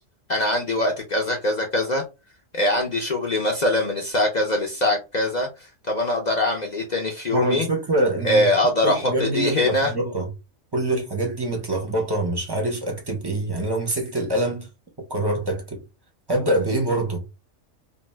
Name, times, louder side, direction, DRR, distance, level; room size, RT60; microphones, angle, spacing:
voice 1, 0.3-2.0 2.5-5.5 5.9-7.7 8.2-9.9, left 1 dB, 55° left, 0.5 m, -22 dB
voice 2, 7.3-8.5 8.8-10.3 10.7-14.7 15.0-15.8 16.3-17.3, right 1 dB, 25° right, 0.6 m, -25 dB
2.6 x 2.1 x 3.1 m
omnidirectional pair, 1.4 m